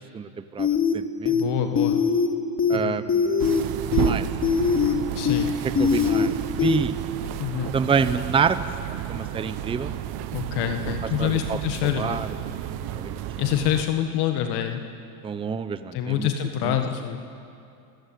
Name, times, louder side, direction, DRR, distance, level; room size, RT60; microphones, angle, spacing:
voice 1, 0.1-1.4 2.7-3.7 4.0-4.3 5.8-7.0 7.7-8.6 9.1-9.9 11.2-11.6 12.0-12.3 12.9-13.2 15.2-16.3 16.6-16.8, right 6 dB, 10° right, 12 dB, 0.7 m, -27 dB
sound 1, 0.6-0.9 1.3-1.4 1.8-2.3 2.6-2.8 3.1-3.6 3.9-4.1 4.4-4.9 5.3-5.4 5.8-6.3 6.6-6.8, left 6 dB, 25° left, 3.0 m, -21 dB
voice 2, 1.3-2.0 2.7-3.0 5.1-5.5 7.4-7.8 10.3-12.2 13.4-14.8 15.9-17.2, left 10 dB, 50° left, 6 dB, 1.7 m, -26 dB
sound 2, 3.4-13.9, right 12 dB, 50° right, 1.4 m, -32 dB
29.5 x 16.5 x 9.2 m, 2.5 s
supercardioid pair, 110°, 50 cm